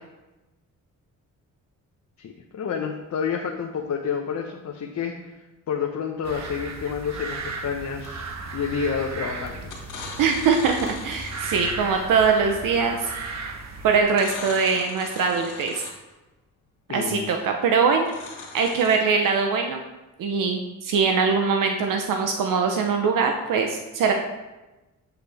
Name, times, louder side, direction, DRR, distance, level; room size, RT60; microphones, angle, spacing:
voice 1, 2.2-5.3 5.7-9.7 16.9-17.3, left 6 dB, 60° left, 1 dB, 0.9 m, -29 dB
sound 1, 6.2-14.0, right 4 dB, 55° right, 1.1 m, -35 dB
sound 2, 8.8-9.1 9.6-11.9 14.1-16.1 18.0-19.0, left 4 dB, 85° left, 2.0 m, -39 dB
voice 2, 10.2-10.8 11.0-13.1 13.8-15.8 16.9-18.1 18.5-19.8 20.2-24.1, right 5 dB, 85° right, 3 dB, 0.8 m, -22 dB
8.1 x 7.9 x 3.5 m, 1.1 s
cardioid pair, 110°, 32 cm